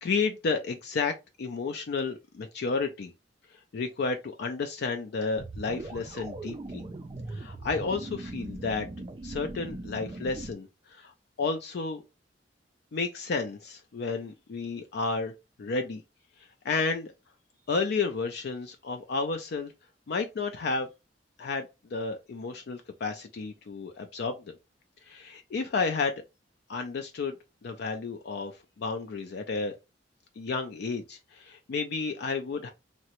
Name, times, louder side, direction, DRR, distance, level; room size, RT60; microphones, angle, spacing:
voice 1, 0.0-3.1 3.5-6.8 7.3-8.9 9.2-12.0 12.9-15.3 15.6-16.0 16.4-17.1 17.7-19.7 20.1-20.9 21.4-24.5 25.0-26.2 26.7-27.3 27.6-29.7 30.4-32.7, left 4 dB, 60° left, 0.4 m, -32 dB
sound 1, 5.4-10.5, right 2 dB, 25° right, 0.3 m, -40 dB
3.7 x 2.1 x 2.9 m
head